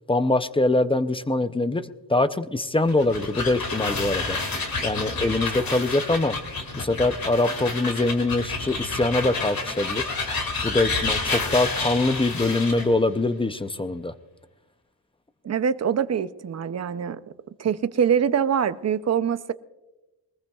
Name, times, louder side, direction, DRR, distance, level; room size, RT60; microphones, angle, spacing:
voice 1, 0.1-4.4 4.8-6.4 6.7-10.1 10.6-14.1, left 2 dB, 15° left, 11 dB, 0.4 m, -23 dB
sound 1, 2.8-12.9, left 3 dB, 55° left, 2.3 m, -29 dB
voice 2, 15.4-17.2 17.6-19.5, right 7 dB, 40° right, 13 dB, 0.5 m, -24 dB
22.5 x 20.0 x 2.3 m, 1.1 s
wide cardioid pair, 135°, 42 cm